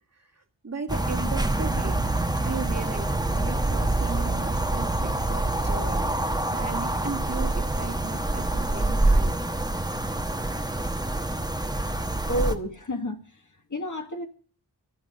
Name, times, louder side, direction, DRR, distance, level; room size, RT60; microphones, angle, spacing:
voice 1, 0.2-2.0 2.4-9.4, right 4 dB, 35° right, 1.9 m, -37 dB
sound 1, 0.9-12.5, right 2 dB, 10° right, 1.2 m, -26 dB
voice 2, 12.3-14.3, left 1 dB, 45° left, 1.6 m, -31 dB
13.5 x 5.9 x 9.5 m
wide cardioid pair, 65°, 44 cm